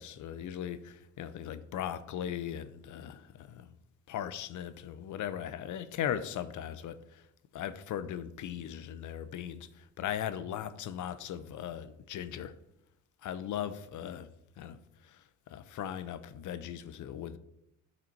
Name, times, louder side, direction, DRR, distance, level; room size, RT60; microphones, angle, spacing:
voice 1, 0.0-3.7 4.1-7.2 7.5-9.7 10.0-12.5 13.2-14.3 14.6-14.8 15.5-17.4, left 10 dB, 60° left, 0.8 m, -38 dB
12.0 x 4.3 x 4.6 m
supercardioid pair, 80°, 33 cm